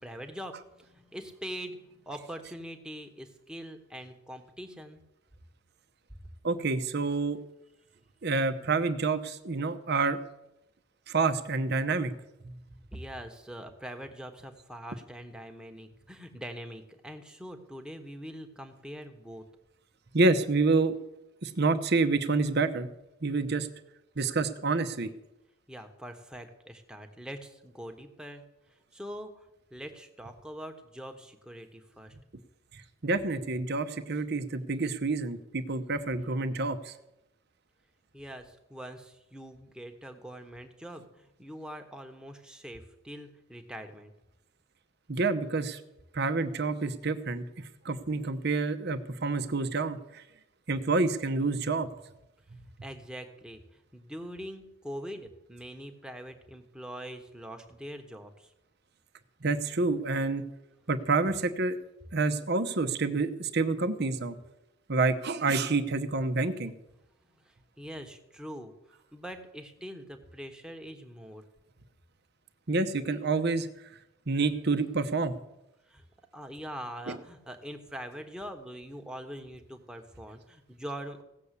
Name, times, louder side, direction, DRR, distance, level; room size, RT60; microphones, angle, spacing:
voice 1, 0.0-5.0 12.9-19.5 25.7-28.4 28.9-29.4 29.7-32.1 38.1-44.1 52.8-53.6 53.9-58.5 67.5-68.7 69.1-71.4 75.9-76.0 76.3-81.2, equal, 5° right, 5 dB, 1.2 m, -43 dB
voice 2, 6.4-7.4 8.2-10.2 11.1-12.1 20.1-20.9 21.4-22.9 23.2-23.7 24.2-25.1 33.0-36.9 45.1-45.8 46.1-47.4 47.8-50.2 50.7-51.9 59.4-60.4 60.9-61.8 62.1-64.4 64.9-66.7 72.7-73.7 74.3-75.3 77.1-77.2, right 3 dB, 50° right, 9 dB, 0.9 m, -28 dB
16.5 x 7.0 x 8.3 m, 0.90 s
head